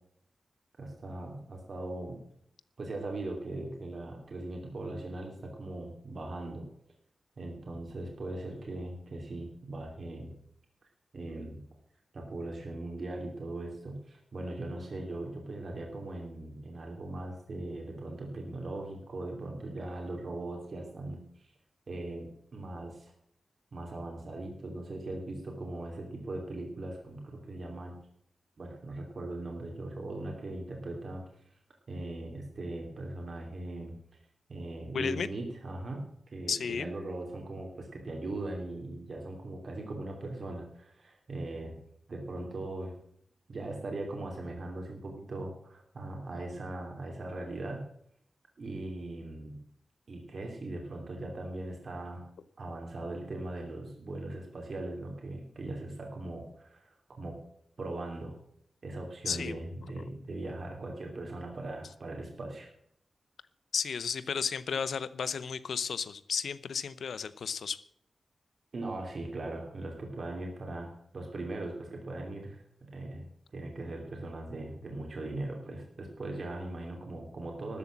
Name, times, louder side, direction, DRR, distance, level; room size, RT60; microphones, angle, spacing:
voice 1, 0.8-2.2 2.8-6.7 7.4-10.3 11.1-11.6 12.1-21.5 21.9-23.1 23.7-28.0 28.6-31.2 31.9-33.9 34.5-36.0 36.3-41.8 42.1-42.9 43.5-47.8 48.6-49.6 50.1-52.2 52.6-57.4 57.8-58.4 58.8-62.7 68.7-77.8, right 2 dB, 45° right, 1 dB, 2.9 m, -39 dB
voice 2, 34.9-35.3 36.5-36.9 59.3-59.6 63.7-67.8, left 6 dB, 85° left, 17 dB, 0.7 m, -33 dB
13.0 x 8.1 x 7.4 m, 0.67 s
wide cardioid pair, 165°, 0 cm